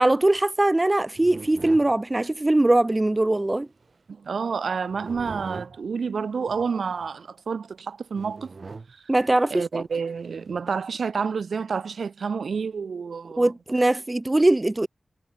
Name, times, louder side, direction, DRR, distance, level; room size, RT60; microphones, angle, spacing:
voice 1, 0.0-3.7 9.1-9.8 13.4-14.9, right 2 dB, 20° right, 0.7 m, -21 dB
sound 1, 1.1-1.9 3.7-3.9 4.9-5.8 6.5-7.1 8.1-8.9 9.8-10.6, right 4 dB, 50° right, 4.5 m, -41 dB
voice 2, 4.1-8.5 9.5-13.5, right 5 dB, 90° right, 3.0 m, -29 dB
wide cardioid pair, 115°, 0 cm